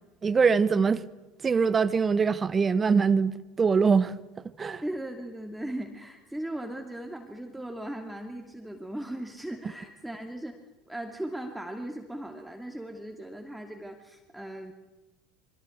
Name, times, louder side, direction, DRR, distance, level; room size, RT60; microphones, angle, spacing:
voice 1, 0.2-1.0 1.4-4.2 4.6-4.8, right 5 dB, 25° right, 1.3 m, -23 dB
voice 2, 4.8-10.6 10.9-14.7, right 1 dB, 5° right, 2.6 m, -38 dB
27.5 x 24.5 x 8.2 m
figure-of-eight pair, 70°, 0 cm